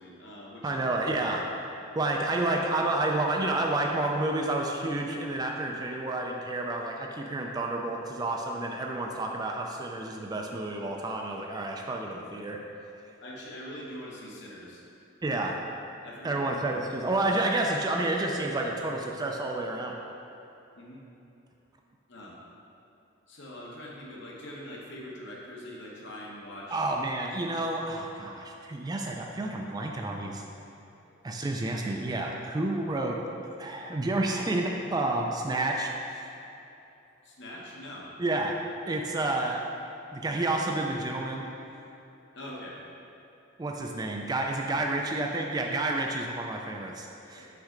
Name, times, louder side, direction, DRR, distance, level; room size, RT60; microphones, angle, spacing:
voice 1, 0.0-0.8 13.2-14.8 16.0-16.4 20.8-21.0 22.1-22.4 23.3-26.8 31.0-31.1 37.2-38.1 42.4-42.8 47.3-47.5, left 1 dB, 60° left, -3 dB, 1.1 m, -43 dB
voice 2, 0.6-1.6 2.0-12.6 15.2-15.6 16.2-19.9 26.7-30.4 31.2-33.2 33.6-36.3 38.2-38.5 38.9-39.6 40.1-41.4 43.6-47.5, right 2 dB, 20° right, 1 dB, 0.3 m, -30 dB
5.9 x 5.4 x 3.7 m, 2.9 s
head